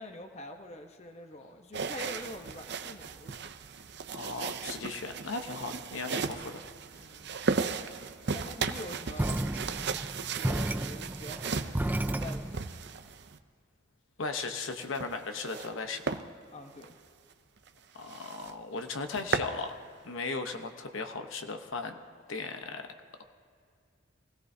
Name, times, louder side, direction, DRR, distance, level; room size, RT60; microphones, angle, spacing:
voice 1, 0.0-3.3 7.0-7.7 8.3-9.4 10.1-12.8 16.5-17.0, left 1 dB, 35° left, 5 dB, 1.0 m, -45 dB
sound 1, 1.7-13.4 14.7-15.7 16.0-16.2 16.7-16.9 17.3-17.4 17.7-17.8 18.1-18.5 18.9-19.6, right 5 dB, 55° right, 0.6 m, -36 dB
voice 2, 4.1-6.6 14.2-16.2 17.9-19.7 20.0-22.0 22.3-22.9, left 3 dB, 80° left, 6 dB, 1.0 m, -37 dB
sound 2, 9.2-12.7, right 1 dB, 10° right, 0.3 m, -32 dB
24.0 x 17.0 x 2.8 m, 2.3 s
head